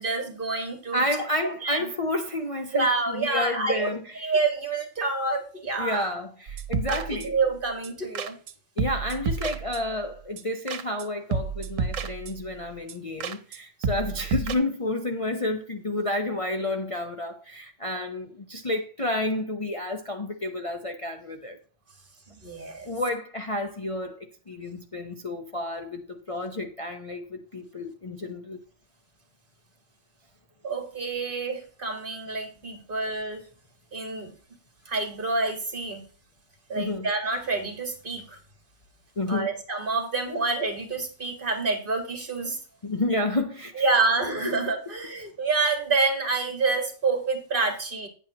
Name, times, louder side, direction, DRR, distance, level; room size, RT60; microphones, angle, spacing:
voice 1, 0.0-1.0 1.6-1.9 2.7-6.1 6.9-8.3 13.9-14.1 22.4-22.9 30.6-33.4 33.9-34.3 34.9-36.1 36.7-38.4 39.3-42.6 43.8-48.1, right 3 dB, 45° right, 1.9 m, -28 dB
voice 2, 0.9-4.3 5.8-7.3 8.8-21.6 22.8-28.6 36.7-37.1 39.2-39.5 42.8-43.9, left 1 dB, 30° left, 0.8 m, -30 dB
sound 1, 6.5-7.5 7.8-7.9 8.2-8.5 8.8-10.0 10.4-11.1 11.3-12.5 12.9-13.0 13.2-13.6 13.8-14.6, right 5 dB, 85° right, 1.2 m, -30 dB
9.2 x 8.7 x 2.9 m
omnidirectional pair, 1.3 m